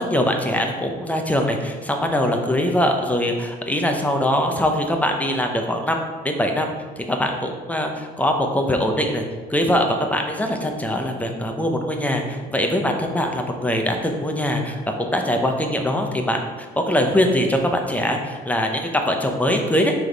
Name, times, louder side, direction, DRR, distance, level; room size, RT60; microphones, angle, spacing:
voice 1, 0.0-6.0 6.2-6.7 7.0-9.2 9.5-16.4 16.9-19.9, equal, 10° left, 3 dB, 0.7 m, -22 dB
6.1 x 3.6 x 4.6 m, 1.4 s
cardioid pair, 110°, 17 cm